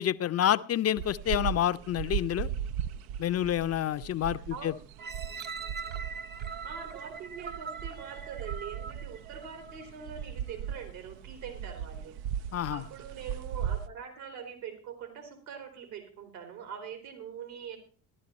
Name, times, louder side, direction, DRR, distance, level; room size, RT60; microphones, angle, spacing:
voice 1, 0.0-2.5 3.2-4.7 12.5-12.8, left 11 dB, 35° left, 14 dB, 0.6 m, -28 dB
sound 1, 1.0-13.9, right 9 dB, 60° right, 0.6 m, -38 dB
voice 2, 4.3-4.7 6.4-12.1 12.7-17.8, right 7 dB, 75° right, 6 dB, 3.5 m, -43 dB
sound 2, 5.0-9.9 10.5-10.6, right 5 dB, 25° right, 0.7 m, -42 dB
13.5 x 12.0 x 4.2 m, 0.38 s
hypercardioid pair, 60°, 44 cm